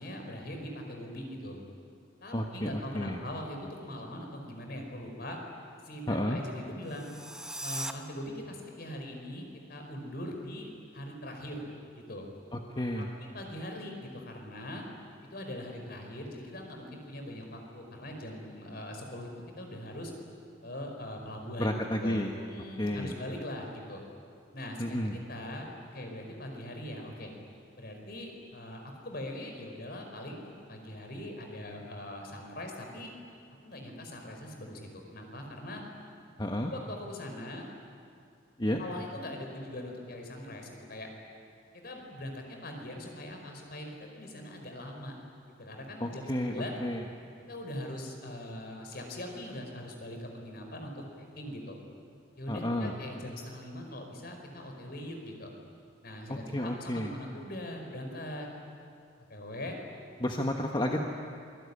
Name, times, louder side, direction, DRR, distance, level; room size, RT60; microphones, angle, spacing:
voice 1, 0.0-1.6 2.2-5.4 5.8-7.1 7.6-12.3 12.9-14.8 15.3-19.3 19.6-20.1 20.6-24.0 24.5-25.7 25.9-27.3 27.8-33.1 33.6-35.8 36.7-37.7 38.8-41.1 41.7-45.2 45.6-46.8 47.5-51.8 52.4-55.5 56.0-58.5 59.3-59.8, left 1 dB, 55° left, 2 dB, 5.2 m, -41 dB
voice 2, 2.3-3.2 6.1-6.4 12.5-13.1 21.6-22.3 22.8-23.1 24.8-25.2 36.4-36.7 38.6-38.8 46.0-47.0 52.5-52.9 56.3-57.1 60.2-61.0, left 1 dB, 25° left, 1 dB, 1.5 m, -31 dB
sound 1, 6.8-7.9, right 1 dB, 5° right, 1.1 m, -39 dB
26.5 x 20.5 x 9.9 m, 2.4 s
head